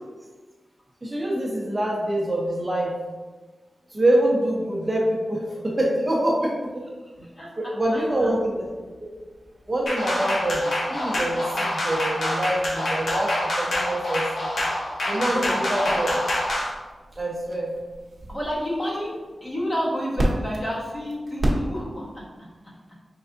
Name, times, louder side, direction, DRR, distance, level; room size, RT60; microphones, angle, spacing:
voice 1, 1.0-3.0 3.9-6.8 7.6-8.7 9.7-14.5 15.0-16.1 17.2-17.7, right 1 dB, 25° right, -3 dB, 0.7 m, -25 dB
voice 2, 7.2-8.3 15.3-15.9 18.3-22.3 22.6-22.7, equal, 30° left, -4 dB, 1.2 m, -30 dB
sound 1, 7.8-22.2, right 1 dB, 55° right, 0.8 m, -35 dB
sound 2, 9.9-16.7, left 1 dB, 90° left, 0.9 m, -26 dB
4.6 x 3.4 x 2.6 m, 1.3 s
wide cardioid pair, 125°, 0 cm